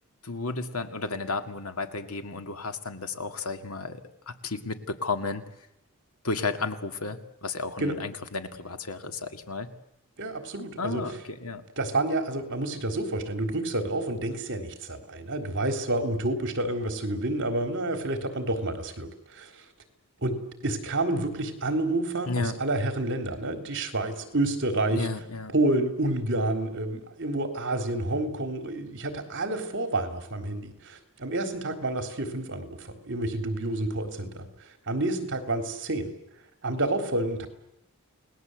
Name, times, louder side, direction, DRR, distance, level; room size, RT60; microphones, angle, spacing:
voice 1, 0.2-5.4 6.2-9.7 10.8-11.6 22.3-22.6 24.9-25.5, left 3 dB, 70° left, 7 dB, 2.2 m, -33 dB
voice 2, 10.2-11.0 11.8-19.6 20.2-20.4 20.6-25.1 25.5-36.1 36.6-37.5, right 2 dB, 60° right, 6 dB, 3.7 m, -29 dB
29.5 x 19.5 x 8.1 m, 0.85 s
head